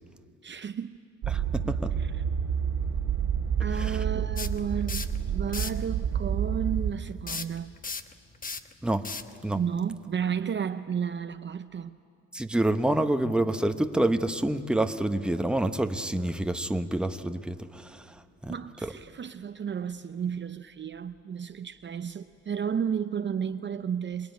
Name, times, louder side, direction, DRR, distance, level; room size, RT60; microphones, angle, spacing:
voice 1, 0.4-1.0 1.6-2.1 3.6-7.7 9.5-12.0 18.5-24.3, right 7 dB, 40° right, 0.7 m, -33 dB
sound 1, 1.2-6.9, right 8 dB, 75° right, 2.0 m, -29 dB
voice 2, 1.3-1.9 3.8-4.0 8.8-9.0 9.4-9.6 12.3-18.0 18.4-18.5 18.8-18.9, right 1 dB, 5° right, 1.0 m, -27 dB
sound 2, 4.4-5.2 5.5-5.8 7.3-10.3, left 4 dB, 30° left, 1.1 m, -37 dB
26.5 x 21.0 x 9.4 m
cardioid pair, 90°, 30 cm